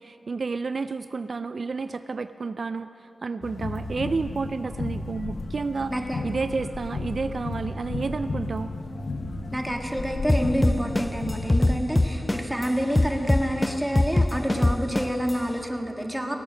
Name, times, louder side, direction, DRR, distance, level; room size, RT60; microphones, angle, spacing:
voice 1, 0.0-2.9 3.2-5.9 6.2-8.7, right 4 dB, 60° right, 11 dB, 0.3 m, -30 dB
sound 1, 3.4-11.8, left 3 dB, 70° left, 0.9 m, -34 dB
sound 2, 4.8-14.8, left 2 dB, 50° left, 1.2 m, -44 dB
voice 2, 5.9-6.2 9.5-16.3, equal, 10° right, 2 dB, 1.6 m, -28 dB
sound 3, 10.3-12.6 12.9-15.3, left 1 dB, 20° left, 0.4 m, -21 dB
17.0 x 9.0 x 6.3 m, 3.0 s
cardioid pair, 65°, 0 cm